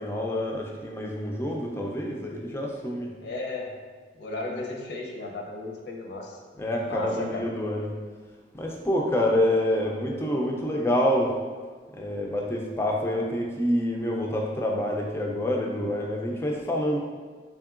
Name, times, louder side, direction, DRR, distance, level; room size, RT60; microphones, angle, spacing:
voice 1, 0.0-3.1 6.6-7.9 8.5-11.4 11.9-17.0, left 1 dB, 15° left, -1 dB, 0.3 m, -27 dB
voice 2, 3.2-3.7 4.2-6.4 6.9-7.4, left 2 dB, 75° left, -1 dB, 0.6 m, -34 dB
3.6 x 3.5 x 2.4 m, 1.5 s
head